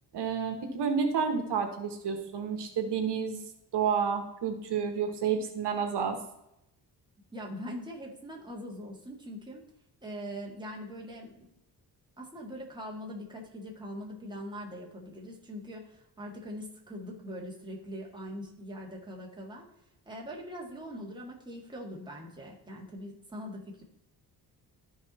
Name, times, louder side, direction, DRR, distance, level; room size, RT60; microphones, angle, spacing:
voice 1, 0.1-3.4 3.7-6.2, right 6 dB, 80° right, 5 dB, 1.5 m, -30 dB
voice 2, 7.3-9.6 10.0-11.5 12.2-19.7 20.1-23.8, equal, 10° right, -2 dB, 1.9 m, -42 dB
13.5 x 4.7 x 4.2 m, 0.82 s
wide cardioid pair, 150°, 40 cm